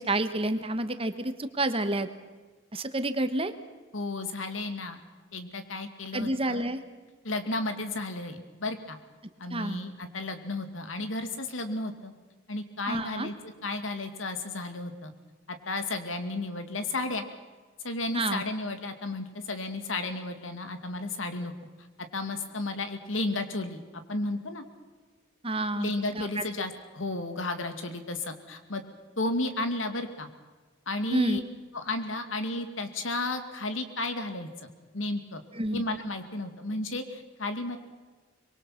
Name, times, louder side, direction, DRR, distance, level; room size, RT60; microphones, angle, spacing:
voice 1, 0.0-2.1 2.7-3.5 6.1-6.8 9.5-9.8 12.9-13.3 18.1-18.4 25.4-26.4 31.1-31.4 35.5-35.8, right 2 dB, 30° right, 10 dB, 1.4 m, -29 dB
voice 2, 3.9-5.0 5.3-6.7 7.2-9.0 9.4-12.1 12.5-13.3 13.6-15.1 15.7-17.2 17.8-21.5 22.1-23.8 24.1-24.6 25.7-28.8 29.2-30.3 30.9-31.4 31.7-34.5 34.9-35.4 35.7-37.8, left 2 dB, 80° left, 8 dB, 2.5 m, -33 dB
25.0 x 22.5 x 6.0 m, 1.4 s
head